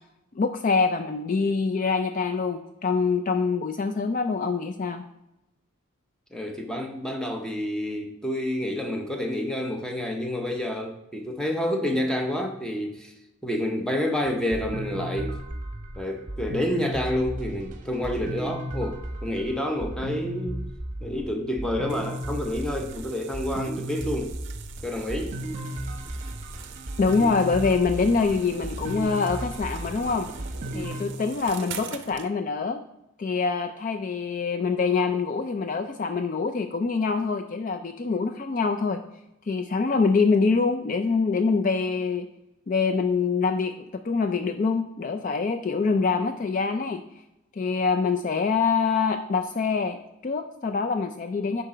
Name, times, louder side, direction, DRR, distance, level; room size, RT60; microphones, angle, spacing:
voice 1, 0.4-5.0 27.0-30.3 30.7-32.8 33.2-39.0 39.5-42.3 42.7-47.0 47.5-51.6, left 4 dB, 35° left, 8 dB, 0.3 m, -25 dB
voice 2, 6.3-13.1 13.4-15.4 16.0-20.7 21.0-24.4 24.8-25.4, left 1 dB, 5° left, 3 dB, 0.8 m, -29 dB
sound 1, 14.3-31.1, right 1 dB, 35° right, 1.0 m, -35 dB
sound 2, 21.9-32.3, right 7 dB, 55° right, 0.6 m, -44 dB
9.9 x 3.9 x 5.0 m, 0.92 s
head